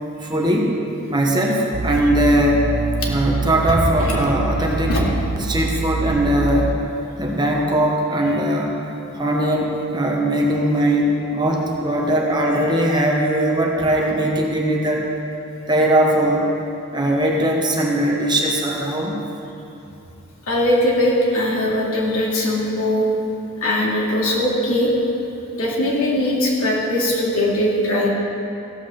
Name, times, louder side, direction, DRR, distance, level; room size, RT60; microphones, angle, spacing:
voice 1, 0.2-0.7 1.1-2.7 3.1-5.0 5.4-6.8 7.2-8.8 9.1-15.1 15.7-16.5 16.9-19.1, right 1 dB, 20° right, -1 dB, 1.2 m, -20 dB
sound 1, 1.7-6.8, right 3 dB, 85° right, 0.7 m, -25 dB
voice 2, 20.5-23.1 23.6-24.9 25.5-28.1, left 1 dB, 80° left, -4 dB, 2.6 m, -20 dB
15.5 x 6.0 x 7.1 m, 2.8 s
head